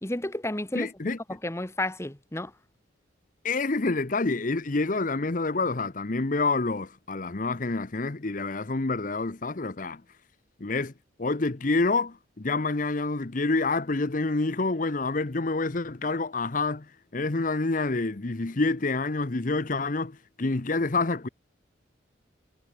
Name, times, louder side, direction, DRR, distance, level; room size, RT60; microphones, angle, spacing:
voice 1, 0.0-0.9 1.3-2.5, left 1 dB, 15° left, 1.2 m, -31 dB
voice 2, 0.7-1.2 3.4-10.0 10.6-10.9 11.2-16.9 17.1-21.3, left 3 dB, 45° left, 0.9 m, -27 dB
head